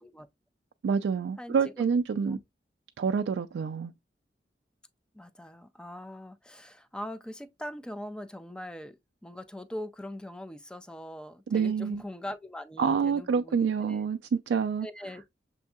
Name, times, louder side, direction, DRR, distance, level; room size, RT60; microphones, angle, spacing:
voice 1, 0.8-2.4 3.0-3.9 11.5-12.0 12.8-14.9, right 6 dB, 80° right, 0.3 m, -27 dB
voice 2, 1.4-1.8 2.1-2.4 5.1-9.0 9.2-14.0 14.8-15.2, left 1 dB, 5° left, 0.3 m, -41 dB
6.8 x 2.7 x 2.3 m
head